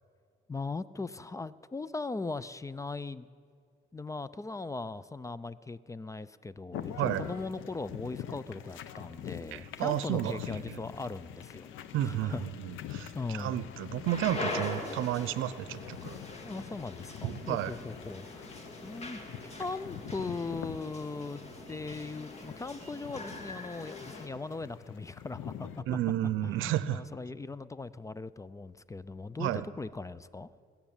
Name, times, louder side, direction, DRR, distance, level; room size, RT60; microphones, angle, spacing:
voice 1, 0.5-3.3 3.9-11.7 12.0-12.4 13.1-13.7 16.4-18.5 18.8-19.2 19.6-21.4 21.7-25.8 26.4-30.5, left 3 dB, 15° left, 17 dB, 0.4 m, -39 dB
sound 1, 6.7-25.8, left 10 dB, 85° left, 0.8 m, -45 dB
voice 2, 9.5-10.4 10.7-10.8 11.9-16.2 17.2-17.7 25.9-27.0 29.4-29.7, right 12 dB, 90° right, 15 dB, 0.6 m, -32 dB
sound 2, 14.1-24.3, left 2 dB, 35° left, 2.1 m, -42 dB
20.5 x 7.2 x 8.9 m, 2.3 s
cardioid pair, 90°, 20 cm